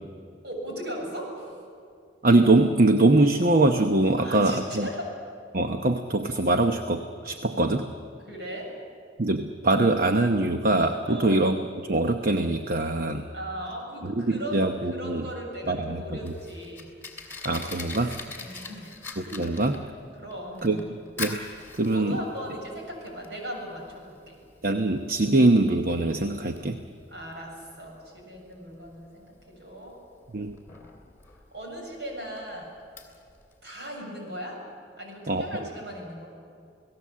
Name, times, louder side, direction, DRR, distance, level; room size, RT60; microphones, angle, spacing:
voice 1, 0.4-1.6 4.2-5.1 8.3-8.7 11.1-11.5 13.3-16.9 18.4-19.0 20.2-20.8 21.9-24.4 27.1-30.0 31.5-32.7 33.6-34.6 35.0-36.3, equal, 65° right, 0 dB, 7.3 m, -38 dB
voice 2, 2.2-4.9 5.5-7.9 9.2-13.3 14.0-15.3 15.7-16.3 17.4-18.2 19.2-19.8 20.6-21.4 21.7-22.2 24.6-26.8 30.3-30.6 35.3-35.7, right 2 dB, 50° right, 6 dB, 0.9 m, -23 dB
Fire, 15.9-33.6, left 3 dB, 10° left, 2.8 m, -43 dB
29.5 x 18.0 x 7.5 m, 2.4 s
head